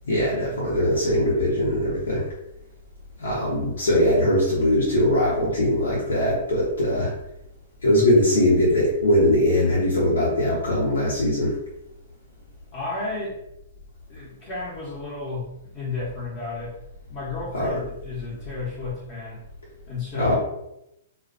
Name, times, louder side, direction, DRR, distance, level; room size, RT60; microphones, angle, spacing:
voice 1, 0.1-2.3 3.2-7.1 7.8-11.6 17.5-17.7 20.1-20.3, left 1 dB, 85° left, -6 dB, 0.8 m, -21 dB
voice 2, 12.7-13.4 14.1-16.7 17.1-19.4 19.9-20.3, left 3 dB, 40° left, -7 dB, 0.8 m, -32 dB
2.3 x 2.1 x 2.5 m, 0.85 s
hypercardioid pair, 130°, 0 cm